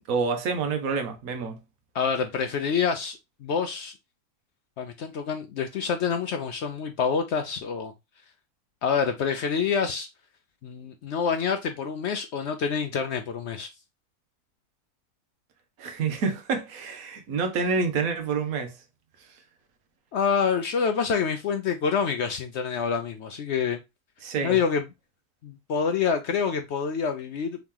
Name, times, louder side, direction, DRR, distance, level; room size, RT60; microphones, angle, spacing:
voice 1, 0.1-1.6 15.8-18.7 24.2-24.6, right 4 dB, 65° right, 1.3 m, -27 dB
voice 2, 1.9-3.9 4.8-7.9 8.8-10.1 10.6-13.7 20.1-23.8 24.4-24.8 25.4-27.6, left 6 dB, 75° left, 0.6 m, -27 dB
3.6 x 2.9 x 3.6 m
omnidirectional pair, 1.7 m